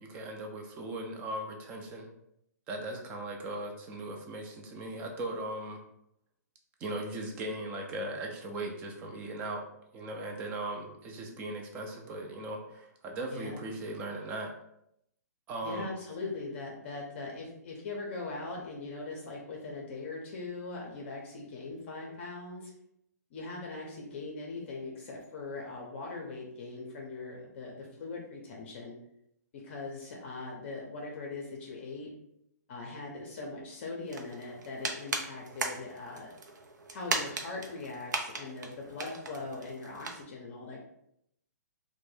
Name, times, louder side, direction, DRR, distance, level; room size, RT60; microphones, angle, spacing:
voice 1, 0.0-2.1 2.7-5.8 6.8-9.6 9.9-14.5 15.5-15.9, right 1 dB, 15° right, 2 dB, 0.3 m, -38 dB
voice 2, 13.3-13.6 15.6-22.7 23.3-28.9 29.5-32.1 32.7-36.3 36.9-40.8, left 3 dB, 40° left, -1 dB, 0.5 m, -41 dB
sound 1, 34.1-40.2, right 3 dB, 85° right, 0.5 m, -38 dB
2.5 x 2.1 x 3.2 m, 0.78 s
hypercardioid pair, 155°, 9 cm